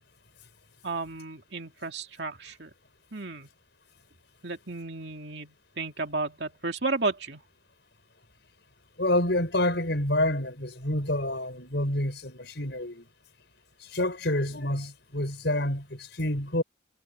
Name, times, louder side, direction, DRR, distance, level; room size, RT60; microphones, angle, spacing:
voice 1, 0.8-2.7 3.1-3.5 4.4-7.4, right 3 dB, 60° right, 2.5 m, -33 dB
voice 2, 9.0-13.1 13.9-16.6, left 1 dB, 60° left, 5.6 m, -28 dB
head